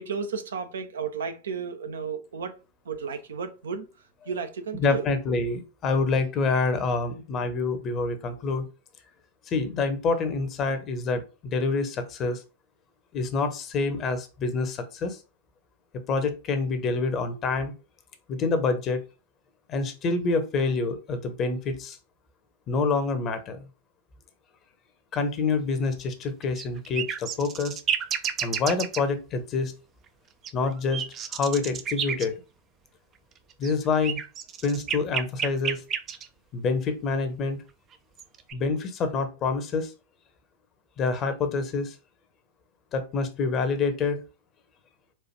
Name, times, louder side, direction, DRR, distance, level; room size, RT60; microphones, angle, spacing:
voice 1, 0.0-2.6 2.9-3.9 4.3-5.1, right 6 dB, 65° right, 0.8 m, -33 dB
voice 2, 4.8-8.6 9.5-12.4 13.1-15.2 16.1-17.7 18.3-19.0 19.7-22.0 22.7-23.6 25.1-27.8 28.4-29.7 30.5-31.0 31.3-32.4 33.6-34.2 34.6-35.8 36.5-37.6 38.5-39.9 41.0-41.9 42.9-44.2, left 4 dB, 30° left, 1.0 m, -27 dB
sound 1, 26.4-29.0 30.4-32.3 33.5-36.3 37.9-38.5, right 8 dB, 30° right, 0.5 m, -30 dB
4.5 x 2.5 x 4.5 m
figure-of-eight pair, 90°, 0 cm